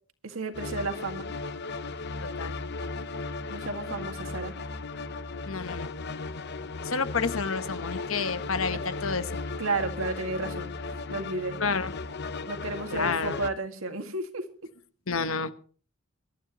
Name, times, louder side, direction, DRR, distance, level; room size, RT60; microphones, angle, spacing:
voice 1, 0.2-1.3 3.5-4.5 8.7-8.8 9.6-10.8 11.1-11.6 12.5-14.5, right 3 dB, 75° right, 5 dB, 2.1 m, -32 dB
sound 1, 0.5-13.5, left 3 dB, 50° left, 0.8 m, -36 dB
voice 2, 5.5-5.9 6.8-9.3 11.6-11.9 12.9-13.4 15.1-15.5, left 5 dB, 70° left, 11 dB, 1.0 m, -29 dB
23.5 x 12.0 x 3.0 m, 0.41 s
head